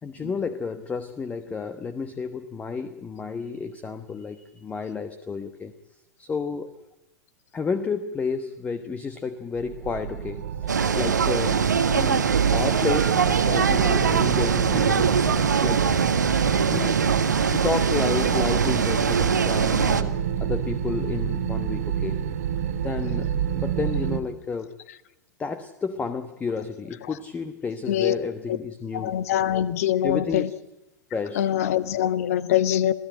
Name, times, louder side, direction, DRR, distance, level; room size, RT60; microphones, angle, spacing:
voice 1, 0.0-5.7 6.2-6.7 7.5-11.7 11.9-13.2 13.5-15.1 15.6-15.9 16.6-17.0 17.5-20.1 20.4-22.2 22.8-24.7 25.4-29.1 30.0-30.6 31.1-31.5, left 5 dB, 15° left, 10 dB, 1.2 m, -31 dB
sound 1, 9.5-24.2, right 8 dB, 60° right, 1.9 m, -27 dB
sound 2, 10.7-20.0, right 6 dB, 75° right, 1.5 m, -23 dB
voice 2, 28.9-30.5 31.4-32.9, left 11 dB, 55° left, 13 dB, 1.4 m, -23 dB
26.5 x 16.5 x 9.1 m, 0.98 s
figure-of-eight pair, 100°, 10 cm